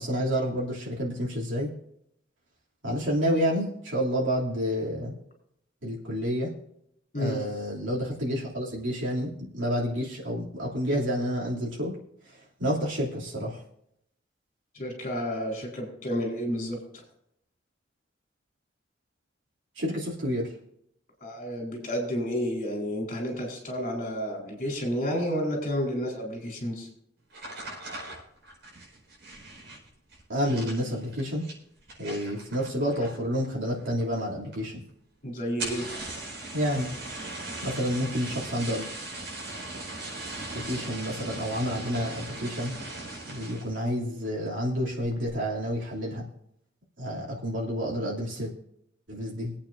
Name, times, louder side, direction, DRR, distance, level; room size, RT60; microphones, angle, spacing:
voice 1, 0.0-1.7 2.8-5.1 5.8-6.5 7.1-12.0 12.2-13.6 19.7-20.5 30.3-31.4 32.0-34.8 36.5-37.0 37.6-38.9 40.5-42.7 43.3-46.2 47.0-48.5 49.1-49.5, equal, 85° right, -5 dB, 2.9 m, -29 dB
voice 2, 14.7-17.0 21.2-26.9 35.2-35.9, equal, 45° left, 0 dB, 4.2 m, -31 dB
sound 1, 27.3-33.4 33.7-34.2 34.5-34.6 34.9-35.0 35.4-43.8 44.2-44.6 45.0-45.4, right 2 dB, 70° right, 4.9 m, -39 dB
24.0 x 8.7 x 2.7 m, 0.75 s
head